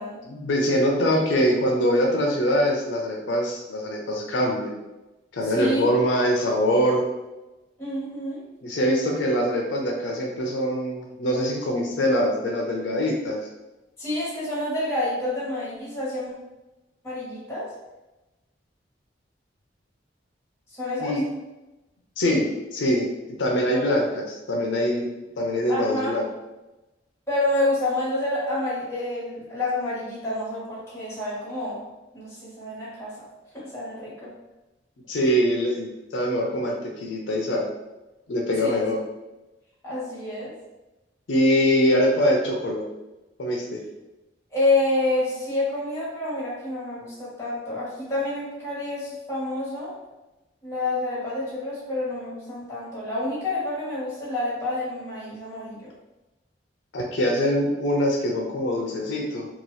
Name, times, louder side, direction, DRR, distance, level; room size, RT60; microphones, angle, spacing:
voice 1, 0.3-4.7 5.3-7.0 8.6-13.4 21.0-21.2 22.2-23.1 23.4-25.1 25.4-26.2 35.1-37.6 38.3-39.0 41.3-42.8 43.4-43.8 56.9-59.5, equal, 80° left, 0 dB, 0.5 m, -23 dB
voice 2, 5.4-5.9 7.8-8.4 14.0-16.3 17.0-17.7 20.8-21.1 23.7-23.9 25.7-26.1 27.3-31.8 32.1-33.1 33.5-34.3 38.6-38.8 39.8-40.5 44.5-49.9 50.6-55.9, left 2 dB, 15° left, -9 dB, 1.3 m, -28 dB
2.8 x 2.3 x 3.1 m, 1.0 s
head